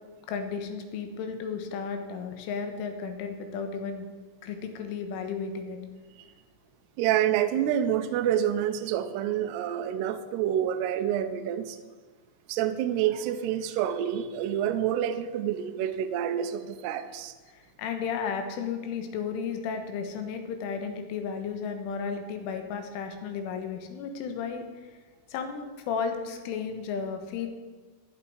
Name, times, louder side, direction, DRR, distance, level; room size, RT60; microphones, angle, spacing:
voice 1, 0.3-4.1 4.4-5.8 10.7-10.9 17.5-24.7 25.3-27.5, left 6 dB, 90° left, 6 dB, 3.9 m, -34 dB
voice 2, 7.0-11.8 12.5-17.3, right 10 dB, 75° right, 9 dB, 2.6 m, -28 dB
14.5 x 11.5 x 4.7 m, 1.4 s
omnidirectional pair, 5.5 m